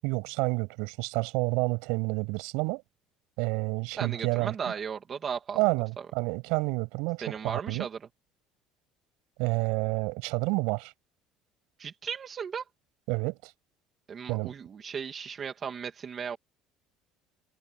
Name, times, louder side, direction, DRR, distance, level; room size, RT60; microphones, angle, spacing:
voice 1, 0.0-2.8 3.4-4.5 5.5-7.9 9.4-10.9 13.1-13.5 14.3-14.5, right 28 dB, 80° right, 7.8 m, -29 dB
voice 2, 3.9-5.6 6.0-6.1 7.2-8.0 11.8-12.6 14.1-16.4, right 7 dB, 25° right, 2.6 m, -36 dB
cardioid pair, 175°, 0 cm